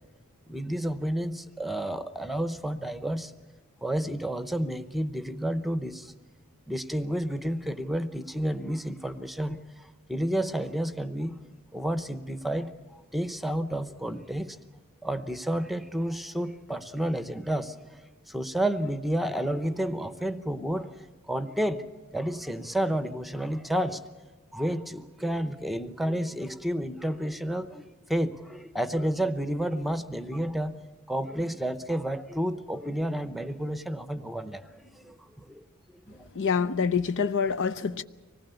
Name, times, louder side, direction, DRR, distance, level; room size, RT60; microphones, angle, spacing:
voice 1, 0.5-3.3 3.8-6.1 6.7-11.4 11.7-14.6 15.0-21.8 22.1-24.0 24.5-27.8 28.1-30.8 31.1-35.7 36.1-36.3, right 1 dB, ahead, 0.8 m, -31 dB
voice 2, 36.3-38.0, left 6 dB, 60° left, 0.6 m, -26 dB
25.0 x 19.5 x 6.9 m
head